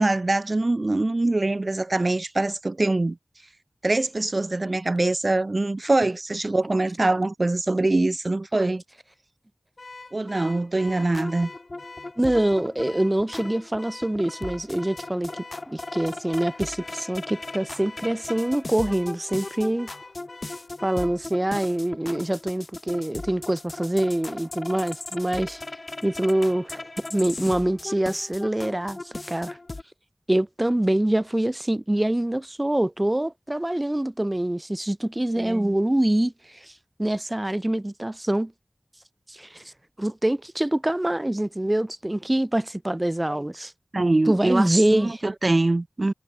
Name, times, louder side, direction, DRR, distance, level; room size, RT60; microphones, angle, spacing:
voice 1, 0.0-3.2 3.8-8.8 10.1-11.5 35.4-35.7 43.9-46.1, right 2 dB, 50° right, 1.3 m, -23 dB
Car / Alarm, 9.8-21.2, left 3 dB, 70° left, 4.7 m, -45 dB
sound 1, 10.9-29.8, left 2 dB, 55° left, 2.9 m, -38 dB
voice 2, 12.2-19.9 20.8-25.6 26.0-26.8 27.1-29.6 30.3-36.3 36.6-36.7 37.0-38.5 39.3-39.6 40.0-43.7 44.3-45.2, right 1 dB, 25° right, 2.7 m, -25 dB
wide cardioid pair, 50°, 0 cm